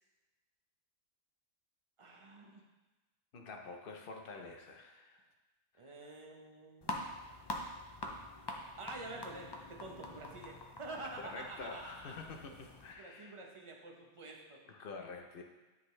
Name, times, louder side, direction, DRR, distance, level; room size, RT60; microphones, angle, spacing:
voice 1, 2.0-2.6 5.8-7.2 8.8-12.2 13.0-14.6, right 2 dB, 30° right, 0 dB, 0.9 m, -48 dB
voice 2, 3.3-5.2 5.8-6.1 11.2-13.4 14.7-15.4, left 4 dB, 55° left, 3 dB, 0.8 m, -48 dB
sound 1, 6.8-12.9, left 1 dB, 35° left, 0.4 m, -45 dB
9.9 x 4.0 x 3.2 m, 1.2 s
omnidirectional pair, 1.3 m